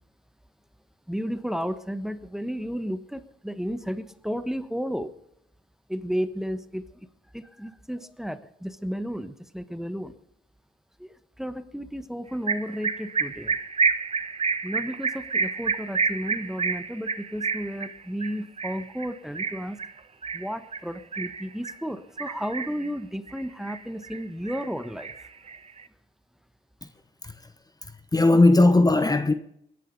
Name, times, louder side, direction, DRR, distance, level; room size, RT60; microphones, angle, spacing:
voice 1, 1.1-5.1 5.9-7.1 7.3-10.1 11.0-13.6 14.6-19.8 20.3-25.3, equal, ahead, 1.2 m, -33 dB
sound 1, 12.5-21.8 22.2-22.9 23.3-24.2 24.5-25.8, right 5 dB, 30° right, 1.2 m, -29 dB
voice 2, 27.8-29.3, left 2 dB, 20° left, 1.0 m, -19 dB
21.0 x 11.0 x 5.2 m
cardioid pair, 90°, 20 cm